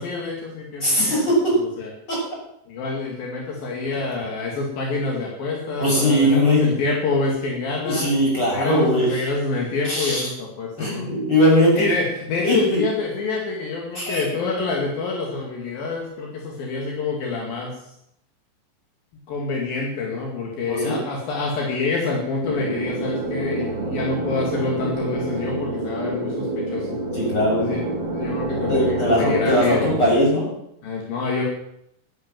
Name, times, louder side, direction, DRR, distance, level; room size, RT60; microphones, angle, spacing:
voice 1, 0.0-1.9 2.7-8.1 8.5-11.1 11.7-17.7 19.3-27.0 27.6-27.8 28.1-30.0 30.8-31.4, left 4 dB, 75° left, -1 dB, 4.0 m, -27 dB
voice 2, 0.8-1.5 2.1-2.2 5.8-6.7 7.8-9.2 9.9-10.2 10.8-11.9 12.4-12.8 13.9-14.2 20.7-21.0 27.1-27.7 28.7-30.5, equal, 25° left, -4 dB, 7.9 m, -20 dB
sound 1, 22.4-30.1, right 2 dB, 40° right, 3.9 m, -27 dB
13.0 x 10.0 x 7.4 m, 0.74 s
omnidirectional pair, 4.2 m